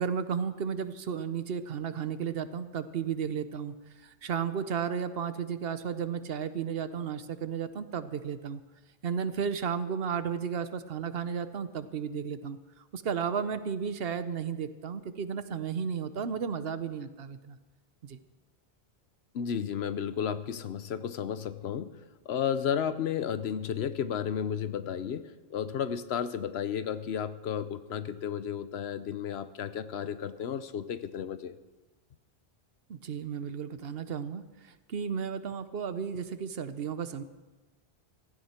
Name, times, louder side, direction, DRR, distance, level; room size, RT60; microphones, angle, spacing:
voice 1, 0.0-3.7 4.0-8.6 9.0-17.6 18.0-18.2 32.9-37.2, right 7 dB, 65° right, 12 dB, 1.0 m, -33 dB
voice 2, 19.3-21.9 22.3-25.2 25.5-31.6, left 8 dB, 75° left, 13 dB, 1.0 m, -33 dB
16.0 x 15.0 x 4.4 m, 1.2 s
omnidirectional pair, 1.1 m